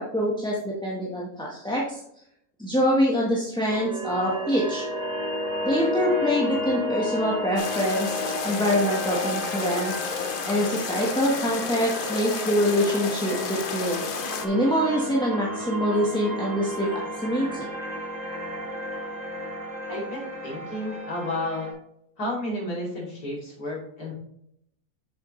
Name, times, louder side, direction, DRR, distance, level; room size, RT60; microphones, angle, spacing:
voice 1, 0.0-2.0 2.6-4.8 5.6-9.9 10.4-14.0 14.4-17.7, equal, 5° left, -4 dB, 1.1 m, -25 dB
sound 1, 3.7-21.7, left 1 dB, 25° right, 2.1 m, -32 dB
sound 2, 7.6-14.5, left 6 dB, 55° left, 0.6 m, -32 dB
voice 2, 19.9-21.7 22.2-24.1, left 1 dB, 75° left, -5 dB, 3.5 m, -32 dB
7.4 x 6.9 x 3.2 m, 0.75 s
omnidirectional pair, 1.7 m